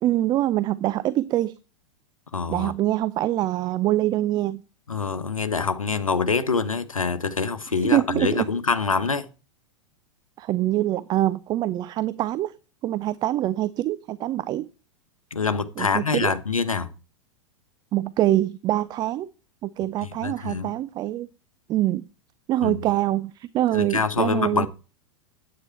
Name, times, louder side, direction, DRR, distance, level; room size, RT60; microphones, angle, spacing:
voice 1, 0.0-1.5 2.5-4.6 7.8-8.5 10.4-12.5 12.8-14.7 15.8-16.4 17.9-19.3 19.6-21.3 21.7-22.0 22.5-24.7, right 14 dB, 25° right, 0.4 m, -24 dB
voice 2, 2.3-2.7 4.9-9.3 15.3-16.9 20.2-20.7 22.6-22.8 23.7-24.7, left 4 dB, 85° left, 1.0 m, -25 dB
9.7 x 8.7 x 4.4 m
figure-of-eight pair, 95°, 17 cm